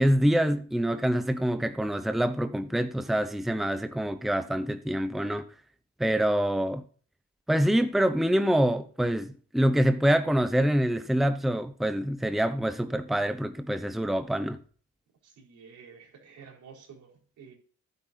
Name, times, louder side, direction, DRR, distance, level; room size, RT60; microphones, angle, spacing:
voice 1, 0.0-5.4 6.0-6.8 7.5-14.6, equal, ahead, 0.8 m, -25 dB
voice 2, 15.2-17.5, right 6 dB, 75° right, 4.4 m, -50 dB
12.5 x 11.0 x 2.7 m
cardioid pair, 90°, 30 cm